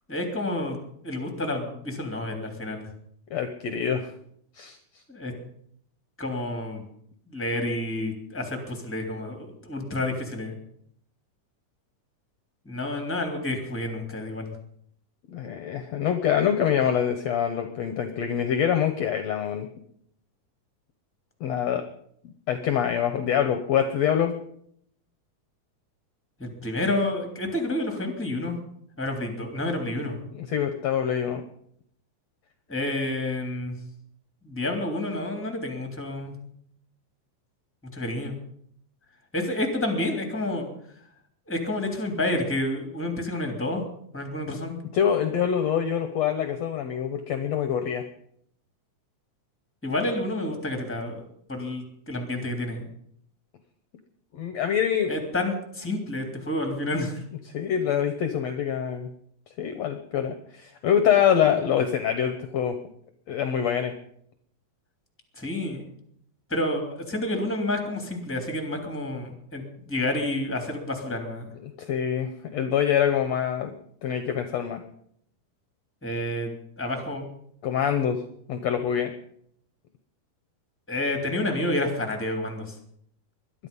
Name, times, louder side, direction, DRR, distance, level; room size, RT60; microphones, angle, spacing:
voice 1, 0.1-0.8 1.0-2.9 5.1-5.3 6.2-6.8 7.3-10.6 12.6-14.5 26.4-28.6 29.0-30.2 32.7-33.8 34.4-36.3 37.9-38.3 39.3-40.7 41.5-43.8 44.1-44.8 49.8-51.2 51.5-52.8 55.1-57.2 65.4-65.8 66.5-71.5 76.0-77.3 80.9-82.7, left 1 dB, 5° left, 4 dB, 2.7 m, -29 dB
voice 2, 3.3-4.1 4.6-4.8 15.3-19.7 21.4-21.8 22.2-24.3 30.3-31.4 44.9-48.0 54.3-55.1 57.5-59.1 59.6-62.8 63.3-63.9 71.6-73.7 74.0-74.8 77.6-78.2 78.5-79.1, left 8 dB, 65° left, 8 dB, 1.9 m, -25 dB
21.0 x 12.0 x 5.5 m, 0.68 s
omnidirectional pair, 3.8 m